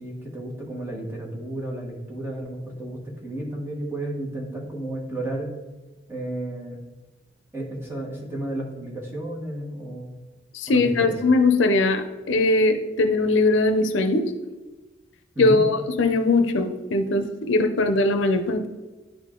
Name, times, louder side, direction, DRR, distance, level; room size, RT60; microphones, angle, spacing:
voice 1, 0.0-5.5 6.1-6.8 7.5-10.1 10.7-11.2 15.3-15.6, right 1 dB, 10° right, -2 dB, 1.4 m, -32 dB
voice 2, 10.5-14.2 15.4-18.7, left 2 dB, 70° left, 7 dB, 0.6 m, -20 dB
10.5 x 3.7 x 3.7 m, 1.2 s
head